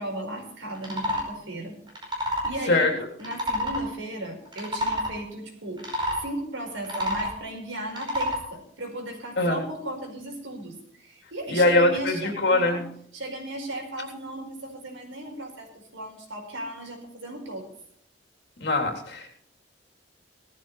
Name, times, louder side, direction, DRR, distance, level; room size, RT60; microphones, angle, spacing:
voice 1, 0.0-1.8 2.4-2.9 3.2-5.9 6.2-12.9 13.1-17.6, right 1 dB, 85° right, 2 dB, 5.2 m, -36 dB
sound 1, 0.7-1.3 1.9-2.5 3.2-3.8 4.5-5.1 5.8-6.2 6.8-7.4 7.9-8.4, equal, 25° right, 5.0 m, -28 dB
voice 2, 11.5-12.8 18.6-19.3, left 2 dB, 60° left, 2 dB, 3.6 m, -22 dB
18.0 x 14.0 x 3.3 m, 0.67 s
head